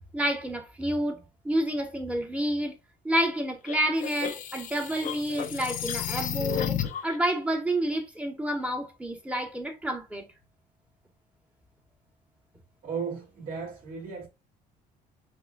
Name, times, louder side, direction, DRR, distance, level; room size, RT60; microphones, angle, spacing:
voice 1, 0.1-2.8 3.0-10.3, right 1 dB, 5° right, 1.0 m, -29 dB
sound 1, 3.7-7.2, left 9 dB, 50° left, 0.5 m, -32 dB
voice 2, 12.8-14.3, right 5 dB, 55° right, 2.1 m, -35 dB
5.9 x 2.2 x 2.2 m
cardioid pair, 110°, 17 cm